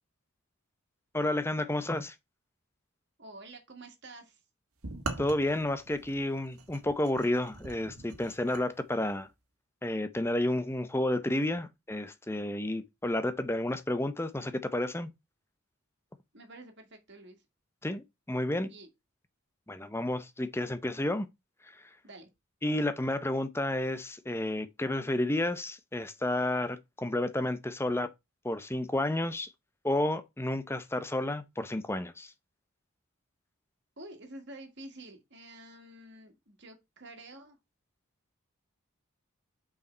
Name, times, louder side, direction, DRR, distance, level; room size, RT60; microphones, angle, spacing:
voice 1, 1.1-2.1 5.2-9.3 9.8-15.1 17.8-18.7 19.7-21.3 21.6-21.8 22.6-28.1 28.4-29.5 29.8-32.3, left 1 dB, 10° left, 0.7 m, -31 dB
voice 2, 3.2-4.4 16.3-17.4 18.7-18.9 22.0-22.3 34.0-37.6, right 2 dB, 55° right, 2.0 m, -49 dB
sound 1, 4.8-8.6, right 3 dB, 85° right, 1.5 m, -42 dB
5.8 x 4.9 x 4.5 m
head